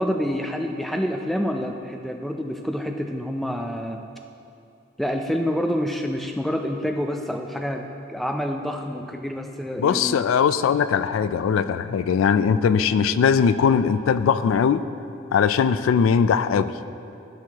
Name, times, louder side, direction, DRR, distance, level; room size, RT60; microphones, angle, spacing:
voice 1, 0.0-4.0 5.0-10.2, equal, ahead, 3 dB, 0.3 m, -27 dB
voice 2, 9.8-14.9 15.3-16.7, left 6 dB, 85° left, 14 dB, 0.3 m, -20 dB
14.5 x 6.1 x 2.9 m, 2.7 s
head